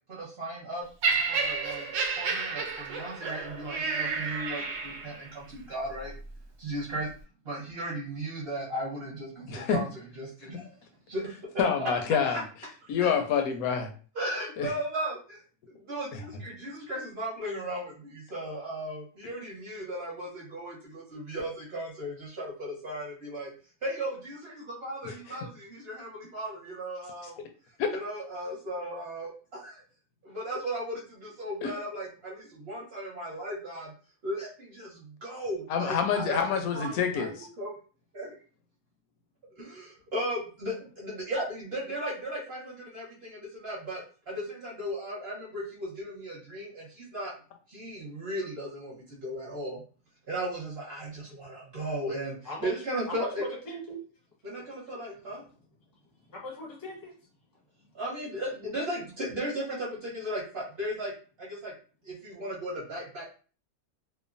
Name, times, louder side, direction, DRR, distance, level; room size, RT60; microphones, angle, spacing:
voice 1, 0.1-0.8 1.3-1.9 2.2-6.1 6.6-7.1 7.4-9.9 10.2-10.8 11.1-11.9 12.3-12.4 13.0-13.1 14.1-15.4 15.7-23.5 23.8-27.4 27.9-29.8 30.2-33.9 34.2-37.3 37.6-37.8 38.1-38.3 39.6-47.3 47.7-49.8 50.3-53.4 54.4-55.4 57.9-61.1 61.4-61.7 62.0-63.2, right 1 dB, 45° right, -5 dB, 1.0 m, -36 dB
Laughter, 1.0-5.3 6.1-6.2, right 4 dB, 65° right, 0.8 m, -31 dB
voice 2, 9.5-9.8 10.5-10.6 11.6-12.4 12.9-13.9 14.6-14.7 16.1-16.2 25.0-25.4 27.8-27.9 31.6-31.7 35.7-37.5, left 7 dB, 70° left, 6 dB, 0.9 m, -27 dB
voice 3, 53.2-54.0 56.3-57.1, left 2 dB, 20° left, -3 dB, 0.6 m, -39 dB
3.0 x 2.1 x 2.4 m, 0.39 s
omnidirectional pair, 1.7 m